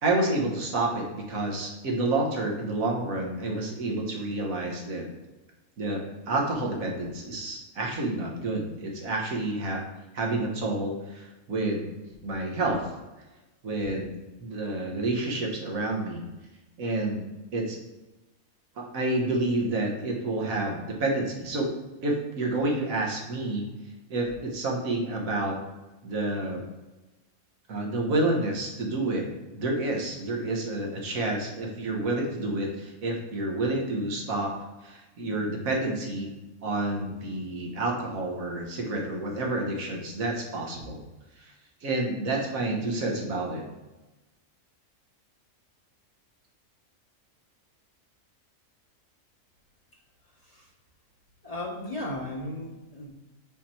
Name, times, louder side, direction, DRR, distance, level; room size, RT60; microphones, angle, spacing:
voice 1, 0.0-5.1 5.8-9.8 10.1-11.9 12.2-12.9 13.6-14.1 14.4-16.2 16.8-17.2 17.5-17.8 18.8-21.7 22.0-23.7 24.1-25.6 26.0-26.6 27.7-29.2 29.5-34.5 34.8-36.3 36.6-41.0 41.4-41.5 41.8-43.6, right 2 dB, 90° right, 0 dB, 1.6 m, -29 dB
voice 2, 50.3-50.7 51.4-53.1, left 1 dB, 35° left, -1 dB, 0.8 m, -36 dB
5.7 x 4.4 x 4.3 m, 1.1 s
omnidirectional pair, 1.4 m